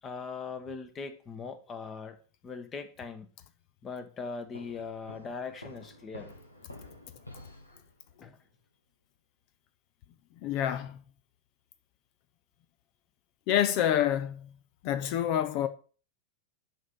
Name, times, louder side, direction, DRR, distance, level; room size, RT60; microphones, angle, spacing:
voice 1, 0.0-2.2 2.4-3.3 3.8-6.3 8.2-8.4, left 5 dB, 25° left, 1.3 m, -40 dB
sound 1, 4.5-8.2, left 1 dB, 85° left, 1.4 m, -49 dB
voice 2, 10.4-11.0 13.5-14.5 14.8-15.7, left 10 dB, 45° left, 0.7 m, -27 dB
11.0 x 3.8 x 6.1 m
figure-of-eight pair, 90°, 0 cm